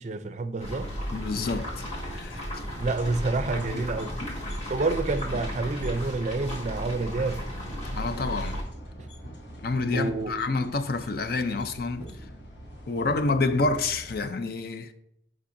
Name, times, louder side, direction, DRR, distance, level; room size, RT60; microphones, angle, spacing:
voice 1, 0.0-0.9 2.8-4.2 4.7-7.4 9.0-9.1 9.9-10.4, right 3 dB, 40° right, 0.4 m, -28 dB
sound 1, 0.6-8.6, equal, 40° left, 1.9 m, -35 dB
sound 2, 0.8-14.2, equal, 75° left, 1.2 m, -44 dB
voice 2, 1.1-1.8 2.1-2.6 7.8-8.6 9.6-12.1 12.9-14.9, left 3 dB, 55° left, 0.5 m, -28 dB
8.4 x 5.3 x 2.6 m
head